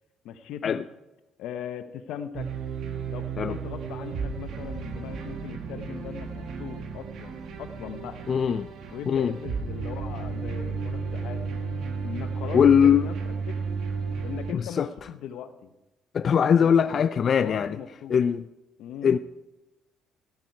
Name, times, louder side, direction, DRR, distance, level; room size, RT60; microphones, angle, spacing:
voice 1, 0.2-0.8 1.4-2.5 3.1-8.2 8.9-11.4 12.0-13.1 13.5-13.6 14.2-15.7 16.5-17.1 17.4-18.2 18.8-19.1, left 8 dB, 80° left, 0.9 m, -39 dB
sound 1, 2.3-14.5, right 5 dB, 65° right, 1.5 m, -33 dB
voice 2, 8.3-8.7 9.1-9.3 12.5-13.1 14.5-14.9 16.1-17.8 18.1-18.5 19.0-19.2, left 7 dB, 40° left, 0.3 m, -21 dB
15.0 x 8.9 x 4.7 m
cardioid pair, 130°, 0 cm